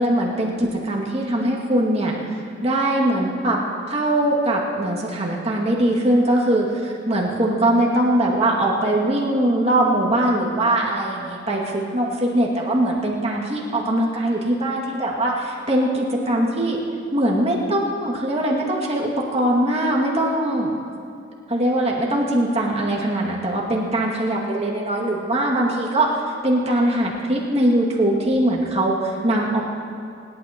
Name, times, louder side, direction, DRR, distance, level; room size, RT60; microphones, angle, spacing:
voice 1, 0.0-3.6 3.9-16.8 17.1-20.7 21.5-29.6, right 1 dB, 35° right, -3 dB, 2.3 m, -21 dB
27.0 x 12.0 x 3.0 m, 2.4 s
head